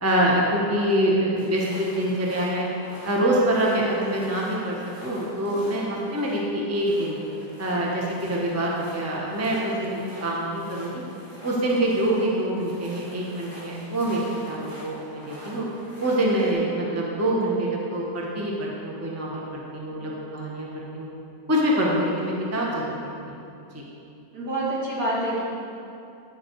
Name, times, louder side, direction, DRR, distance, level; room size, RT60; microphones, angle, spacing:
voice 1, 0.0-2.7 3.0-7.2 7.6-11.0 11.4-14.2 14.5-15.6 16.0-21.1 21.5-22.9 23.3-23.4 23.7-23.8, right 1 dB, 10° right, -3 dB, 1.0 m, -25 dB
sound 1, 1.4-16.5, equal, 30° right, 2.7 m, -45 dB
voice 2, 24.3-25.4, right 1 dB, 70° right, -7 dB, 2.9 m, -27 dB
10.0 x 7.6 x 4.6 m, 2.6 s
omnidirectional pair, 1.8 m